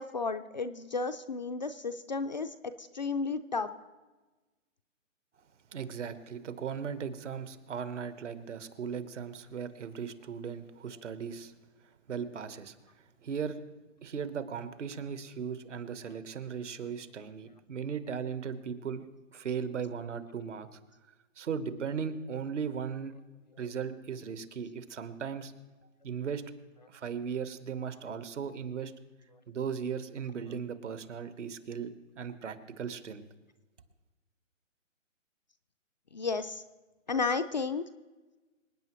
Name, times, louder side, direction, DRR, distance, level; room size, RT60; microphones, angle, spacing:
voice 1, 0.0-3.7 36.1-36.6 37.1-37.8, left 4 dB, 35° left, 9 dB, 0.4 m, -33 dB
voice 2, 5.7-11.5 12.1-13.6 14.0-19.1 19.3-20.8 21.4-23.1 23.6-25.5 26.0-26.4 26.9-28.9 29.5-33.2, right 6 dB, 65° right, 11 dB, 1.3 m, -37 dB
26.0 x 9.1 x 3.1 m, 1.2 s
hypercardioid pair, 145°, 39 cm